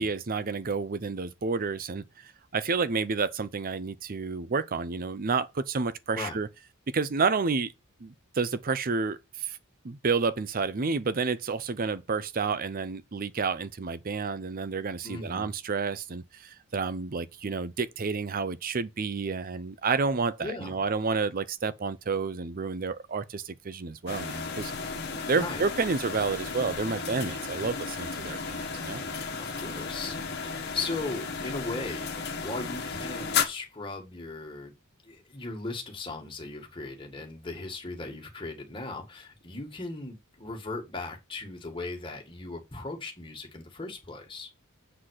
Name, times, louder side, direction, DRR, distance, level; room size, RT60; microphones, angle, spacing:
voice 1, 0.0-6.5 6.9-7.7 8.0-9.6 9.8-24.7 25.2-29.0, right 4 dB, 40° right, 0.6 m, -30 dB
voice 2, 15.0-15.5 20.4-20.8 25.3-25.6 29.4-34.7 35.0-44.5, left 3 dB, 25° left, 1.9 m, -38 dB
sound 1, 24.1-33.5, left 5 dB, 50° left, 1.4 m, -34 dB
7.6 x 4.1 x 6.4 m
head